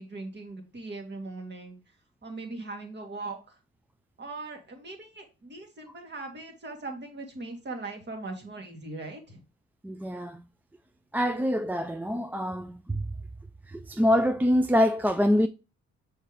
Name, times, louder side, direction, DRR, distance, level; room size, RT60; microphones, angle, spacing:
voice 1, 0.0-1.8 2.2-3.6 4.2-9.4, right 3 dB, 35° right, 2.1 m, -40 dB
voice 2, 9.8-10.4 11.1-13.1 13.7-15.5, equal, 5° right, 0.3 m, -25 dB
6.5 x 4.5 x 3.4 m
cardioid pair, 90°, 30 cm